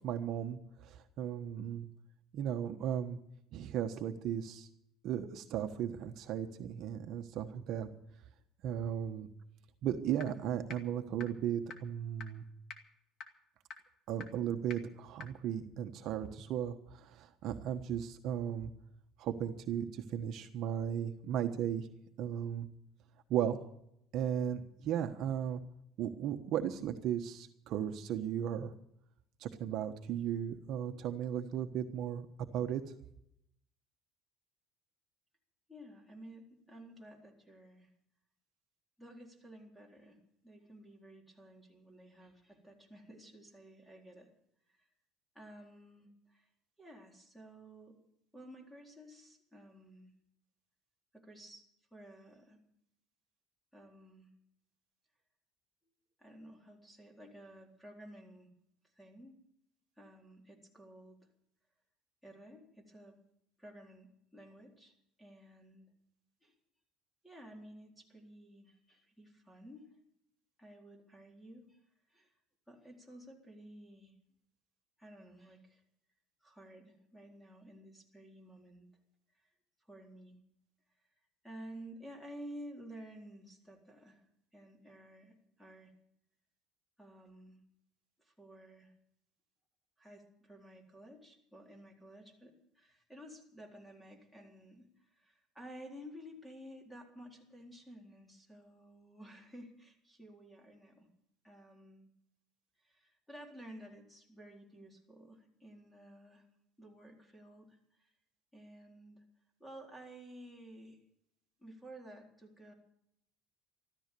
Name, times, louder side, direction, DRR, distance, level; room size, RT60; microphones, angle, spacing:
voice 1, 0.0-1.9 2.3-3.2 3.5-4.7 5.0-7.9 8.6-9.3 9.8-12.4 14.1-18.7 19.2-21.9 22.2-22.7 23.3-23.6 24.1-25.6 26.0-28.7 29.4-32.3 32.5-32.8, right 9 dB, 55° right, 6 dB, 1.2 m, -36 dB
sound 1, 10.2-10.3 10.7-10.8 11.2-11.3 11.7-11.8 12.2-12.3 12.7-12.8 13.2-13.3 13.7-13.8 14.2-14.3 14.7-14.8 15.2-15.3, left 6 dB, 50° left, 2.2 m, -44 dB
voice 2, 35.7-37.9 39.0-44.3 44.7-44.9 45.3-46.5 46.8-48.0 48.3-50.1 51.1-51.7 51.9-52.6 53.7-54.3 56.2-58.5 59.0-59.4 60.0-61.2 62.2-63.1 63.6-64.9 65.2-65.9 66.4-66.5 67.2-69.9 70.6-71.8 72.1-72.3 72.7-74.1 75.0-75.8 76.4-78.8 79.9-80.4 81.4-84.2 84.5-85.9 87.0-87.6 88.2-88.9 90.0-101.1 101.4-102.1 102.8-106.5 106.8-108.1 108.5-109.2 109.6-111.0 111.6-112.7, equal, 5° left, 1 dB, 4.0 m, -53 dB
14.0 x 14.0 x 6.9 m, 0.75 s
cardioid pair, 125°, 0 cm